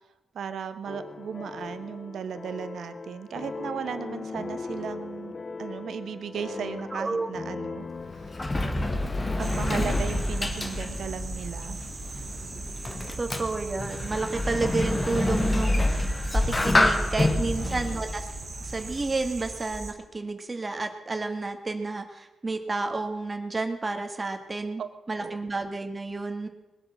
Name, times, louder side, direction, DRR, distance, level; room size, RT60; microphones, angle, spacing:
voice 1, 0.3-7.9 9.4-11.8 17.3-18.0 24.8-24.9 25.2-25.4, right 7 dB, 75° right, 10 dB, 1.2 m, -36 dB
sound 1, 0.9-9.9, left 4 dB, 45° left, 0.8 m, -39 dB
voice 2, 6.9-7.3 13.2-18.2 18.6-24.8 25.1-26.5, right 3 dB, 30° right, 6 dB, 1.8 m, -31 dB
Sliding door, 7.8-19.3, left 2 dB, 30° left, 1.7 m, -28 dB
sound 2, 9.4-19.9, right 3 dB, 50° right, 2.8 m, -39 dB
20.5 x 8.1 x 7.5 m, 1.0 s
cardioid pair, 60°, 0 cm